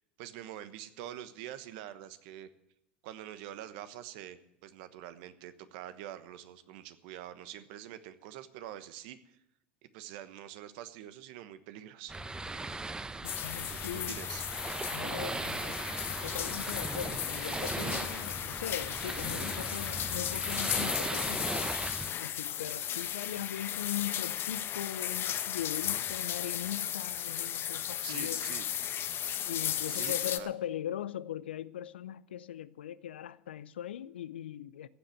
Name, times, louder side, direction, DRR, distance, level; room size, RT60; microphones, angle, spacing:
voice 1, 0.0-2.5 3.0-9.4 9.8-12.2 13.5-14.5 28.0-28.7 29.9-30.5, right 12 dB, 65° right, 1.2 m, -45 dB
sound 1, 12.1-22.1, right 2 dB, 15° right, 0.8 m, -38 dB
voice 2, 13.2-14.2 14.9-15.8 16.2-21.8 22.2-28.5 29.4-34.9, left 11 dB, 85° left, 0.5 m, -40 dB
sound 2, 13.2-30.4, left 10 dB, 40° left, 1.0 m, -35 dB
15.0 x 7.7 x 7.9 m
hypercardioid pair, 80°, 6 cm